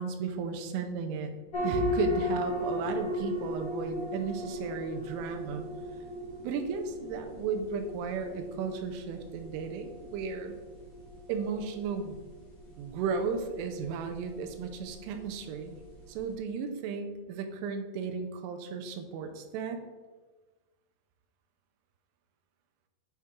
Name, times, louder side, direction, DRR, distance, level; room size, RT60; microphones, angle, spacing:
voice 1, 0.0-1.3 1.6-5.7 6.4-10.6 11.3-12.2 12.8-15.8 16.1-19.8, right 5 dB, 85° right, 5 dB, 3.2 m, -34 dB
sound 1, 1.5-16.3, left 1 dB, 35° left, 1.9 m, -37 dB
9.3 x 3.7 x 4.4 m, 1.3 s
omnidirectional pair, 5.7 m